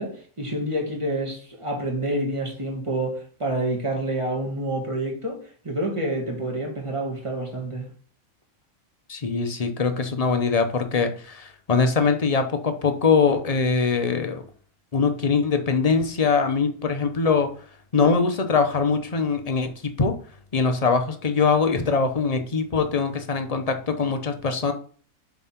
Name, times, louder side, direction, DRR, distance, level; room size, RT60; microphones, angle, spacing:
voice 1, 0.0-7.9, right 1 dB, 20° right, 2.0 m, -28 dB
voice 2, 9.1-14.4 14.9-17.5 17.9-20.1 20.5-24.7, left 5 dB, 35° left, 0.7 m, -22 dB
7.5 x 3.7 x 5.8 m
omnidirectional pair, 1.5 m